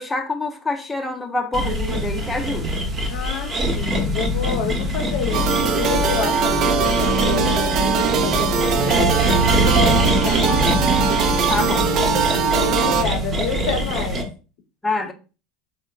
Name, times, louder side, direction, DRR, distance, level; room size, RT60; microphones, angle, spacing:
voice 1, 0.0-2.8 11.5-12.1 14.8-15.1, left 2 dB, 15° left, 0.8 m, -26 dB
sound 1, 1.5-14.2, right 1 dB, 30° right, 1.1 m, -23 dB
voice 2, 3.1-9.1 9.6-10.5 12.6-14.3, left 7 dB, 65° left, 0.6 m, -29 dB
sound 2, 5.3-13.0, right 5 dB, 50° right, 0.6 m, -21 dB
3.6 x 2.1 x 3.9 m
hypercardioid pair, 85°, 0 cm